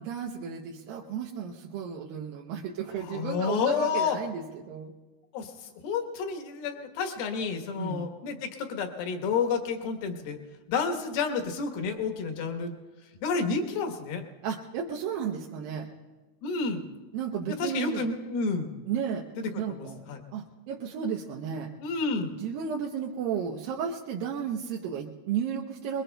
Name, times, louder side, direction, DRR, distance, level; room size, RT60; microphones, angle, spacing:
voice 1, 0.0-4.9 7.8-8.1 14.4-15.9 17.1-18.1 18.9-19.2 19.6-21.7 22.4-26.0, right 7 dB, 75° right, -1 dB, 2.3 m, -33 dB
voice 2, 3.1-4.2 5.3-5.5 5.8-10.4 10.7-12.7 13.2-14.2 16.4-16.8 17.6-18.7 19.4-20.2 21.8-22.3, left 5 dB, 70° left, 5 dB, 2.9 m, -30 dB
25.0 x 22.0 x 2.2 m, 1.2 s
omnidirectional pair, 4.7 m